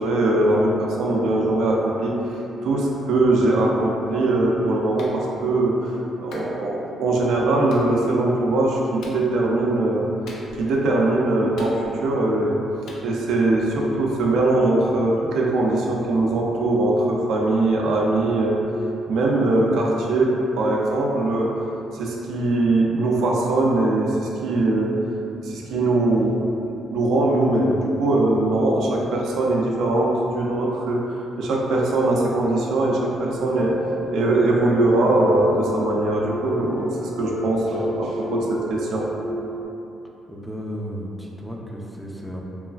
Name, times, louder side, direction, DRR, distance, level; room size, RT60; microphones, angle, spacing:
voice 1, 0.0-5.9 6.2-10.1 10.6-12.6 13.0-18.6 19.1-21.5 21.9-25.0 25.4-31.1 31.4-33.7 34.1-39.1, right 2 dB, 80° right, -2 dB, 0.4 m, -21 dB
Clapping, 5.0-5.2 6.3-6.5 7.7-7.9 9.0-9.2 10.3-10.7 11.6-12.1 12.9-13.0, left 2 dB, 75° left, 0.4 m, -42 dB
sound 1, 33.2-39.6, left 1 dB, 60° left, 1.4 m, -30 dB
voice 2, 40.3-42.4, equal, 5° left, -2 dB, 0.4 m, -33 dB
3.0 x 2.4 x 2.3 m, 2.8 s
cardioid pair, 90°, 0 cm